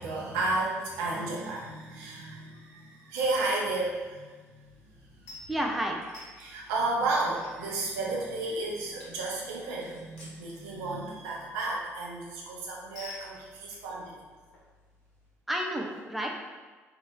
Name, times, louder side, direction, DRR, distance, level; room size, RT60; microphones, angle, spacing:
voice 1, 0.0-4.6 6.4-14.2, right 2 dB, 70° right, -3 dB, 0.6 m, -32 dB
sound 1, 4.5-15.3, left 2 dB, 65° left, 0.8 m, -53 dB
voice 2, 5.5-6.0 15.5-16.3, equal, ahead, 0 dB, 0.4 m, -30 dB
2.6 x 2.4 x 3.0 m, 1.3 s
figure-of-eight pair, 50°, 7 cm